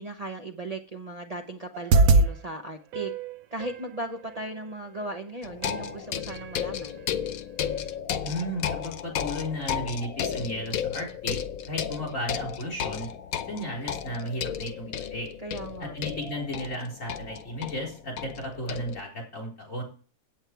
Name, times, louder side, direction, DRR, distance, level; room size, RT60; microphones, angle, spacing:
voice 1, 0.0-3.1 3.5-7.0 15.4-15.9, right 2 dB, 30° right, 0.9 m, -37 dB
sound 1, 1.7-2.3 2.9-3.9 5.0-5.1 5.6-5.9 6.3-6.6 7.0-7.1, right 3 dB, 80° right, 1.1 m, -22 dB
sound 2, 5.4-19.0, left 8 dB, 85° left, 1.2 m, -34 dB
voice 2, 8.2-11.4 11.7-13.1 13.5-15.3 15.8-19.8, equal, 65° left, 4.3 m, -34 dB
8.9 x 8.6 x 4.6 m
omnidirectional pair, 1.4 m